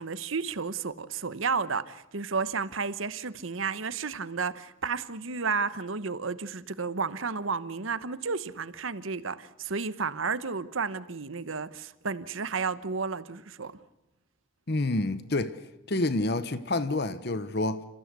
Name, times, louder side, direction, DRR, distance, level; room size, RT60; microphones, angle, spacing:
voice 1, 0.0-13.7, right 5 dB, 80° right, 1.0 m, -32 dB
voice 2, 14.7-17.8, left 2 dB, 50° left, 1.0 m, -28 dB
29.0 x 15.0 x 8.3 m
head